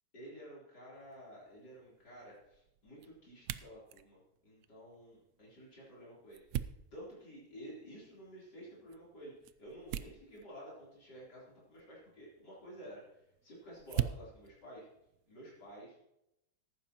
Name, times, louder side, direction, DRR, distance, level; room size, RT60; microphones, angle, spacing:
voice 1, 0.1-6.6 6.9-14.9 15.3-16.0, equal, 80° left, -6 dB, 4.4 m, -52 dB
sound 1, 0.9-15.8, right 11 dB, 75° right, 0.7 m, -45 dB
14.5 x 11.5 x 3.0 m, 0.84 s
omnidirectional pair, 1.8 m